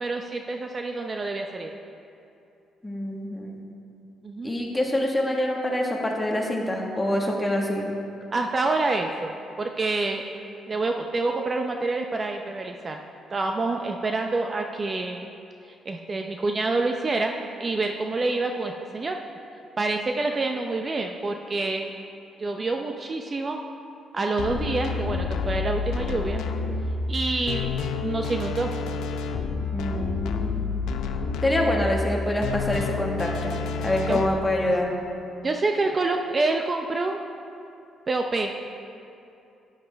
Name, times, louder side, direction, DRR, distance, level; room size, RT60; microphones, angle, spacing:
voice 1, 0.0-1.7 4.2-4.5 8.3-10.2 10.7-13.0 13.3-15.3 15.9-19.2 19.8-21.9 22.4-23.6 24.1-26.4 27.1-27.8 28.0-28.7 34.1-34.2 35.4-37.2 38.1-38.5, right 3 dB, 35° right, 4 dB, 0.6 m, -27 dB
voice 2, 2.8-3.6 4.4-7.9 29.7-30.7 31.4-34.9, left 1 dB, 15° left, 0 dB, 1.5 m, -26 dB
sound 1, 24.4-34.3, left 4 dB, 85° left, 0.6 m, -29 dB
12.0 x 9.5 x 3.4 m, 2.7 s
cardioid pair, 90°, 0 cm